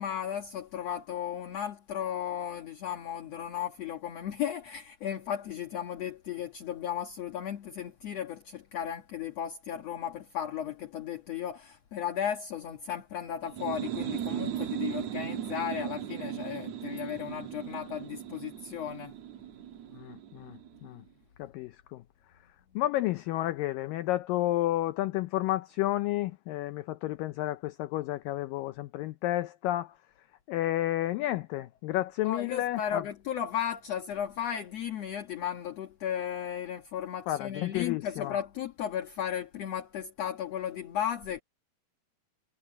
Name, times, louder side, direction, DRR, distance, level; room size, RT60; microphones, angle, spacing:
voice 1, 0.0-19.1 32.2-41.4, left 9 dB, 55° left, 2.0 m, -35 dB
sound 1, 13.4-20.9, right 10 dB, 65° right, 1.8 m, -37 dB
voice 2, 19.9-21.0 21.4-22.0 22.8-29.9 30.5-33.0 37.3-38.4, left 15 dB, 80° left, 2.0 m, -31 dB
omnidirectional pair, 4.6 m